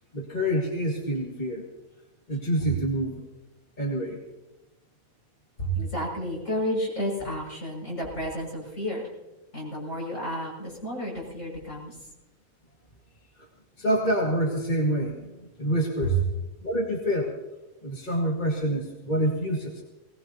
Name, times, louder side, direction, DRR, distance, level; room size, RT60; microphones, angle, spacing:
voice 1, 0.1-1.6 2.3-3.2 3.8-4.2 13.8-16.2 16.6-17.3 17.8-19.8, equal, 35° left, -2 dB, 2.1 m, -27 dB
voice 2, 5.6-9.0 9.5-12.0 16.0-16.1, equal, 60° left, -4 dB, 6.7 m, -31 dB
20.0 x 19.5 x 2.9 m, 1.1 s
omnidirectional pair, 1.5 m